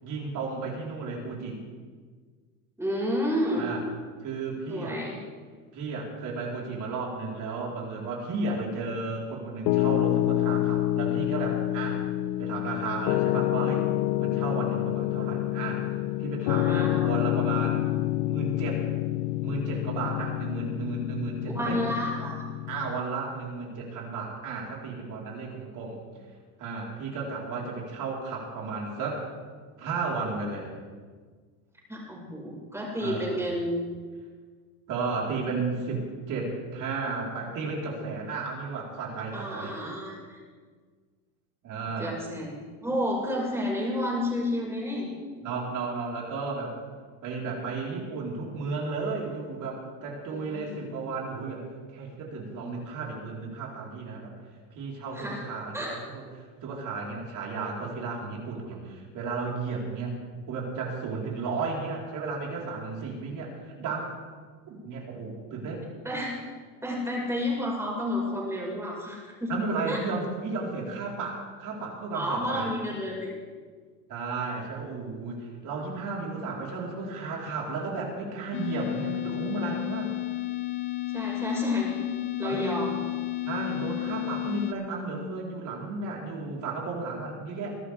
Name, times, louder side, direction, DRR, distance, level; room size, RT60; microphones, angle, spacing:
voice 1, 0.0-1.6 3.5-3.8 4.2-5.0 5.7-12.0 12.4-13.9 14.2-15.8 16.2-17.8 18.2-18.9 19.4-21.8 22.7-26.0 26.6-29.2 29.8-30.7 33.0-33.4 34.9-39.8 41.6-42.2 45.4-46.7 47.2-54.3 54.8-56.2 56.6-60.2 60.5-63.5 63.8-64.1 64.7-65.9 69.5-72.7 74.1-80.1 82.4-82.8 83.4-87.7, right 4 dB, 40° right, -2 dB, 4.5 m, -33 dB
voice 2, 2.8-3.7 4.7-5.2 16.4-17.2 21.5-22.4 31.9-33.9 39.3-40.4 42.0-45.1 50.3-50.8 55.1-55.5 55.7-55.9 66.0-66.3 66.8-69.5 69.9-70.0 72.1-73.4 81.1-81.9 82.4-83.0, left 1 dB, 5° right, -3 dB, 5.6 m, -30 dB
Piano, 9.7-23.0, left 15 dB, 55° left, 0.6 m, -28 dB
sound 1, 78.5-84.7, left 17 dB, 25° left, 1.0 m, -32 dB
22.5 x 12.0 x 3.6 m, 1.5 s
supercardioid pair, 110°, 45 cm